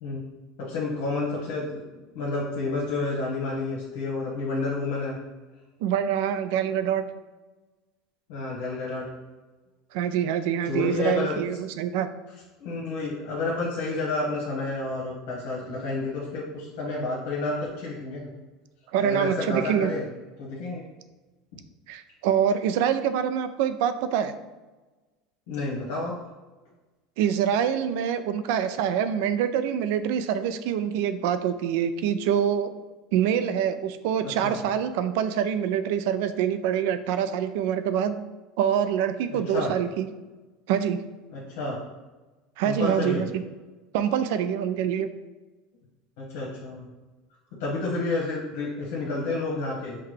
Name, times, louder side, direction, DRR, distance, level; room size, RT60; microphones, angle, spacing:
voice 1, 0.7-1.8 2.1-5.2 8.3-9.0 10.6-11.4 12.6-18.3 19.0-20.1 20.4-20.8 25.5-26.1 34.2-34.5 39.3-39.7 41.3-41.8 42.6-43.2 46.2-46.9 47.6-50.0, left 3 dB, 80° left, -5 dB, 1.1 m, -30 dB
voice 2, 5.8-7.0 9.9-12.1 18.9-19.9 21.9-24.3 27.2-32.7 33.1-38.1 38.6-40.1 40.7-41.0 42.6-43.3 43.9-45.1, right 9 dB, 70° right, 11 dB, 0.3 m, -25 dB
5.8 x 2.1 x 3.2 m, 1.2 s
supercardioid pair, 150°, 0 cm